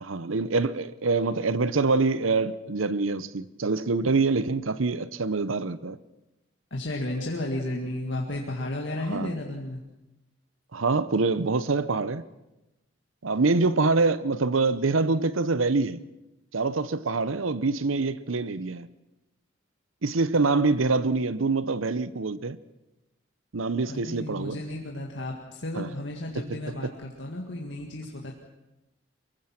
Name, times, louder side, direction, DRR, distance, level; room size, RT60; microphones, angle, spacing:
voice 1, 0.0-6.0 9.1-9.4 10.7-12.2 13.2-16.0 16.5-18.9 20.0-22.6 23.5-24.6 25.8-25.9, right 3 dB, 90° right, 0.8 m, -25 dB
voice 2, 6.7-9.8 23.9-28.3, left 1 dB, 65° left, 2.1 m, -33 dB
23.5 x 23.0 x 5.9 m
head